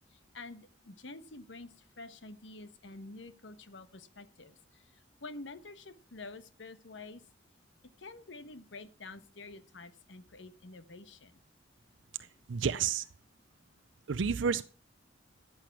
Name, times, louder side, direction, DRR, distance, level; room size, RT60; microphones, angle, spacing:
voice 1, 0.1-1.7 2.0-4.8 5.2-7.2 8.0-11.3, left 3 dB, 70° left, 12 dB, 1.2 m, -48 dB
voice 2, 12.5-13.0 14.1-14.6, right 6 dB, 75° right, 14 dB, 0.5 m, -30 dB
13.5 x 7.7 x 5.8 m, 0.38 s
head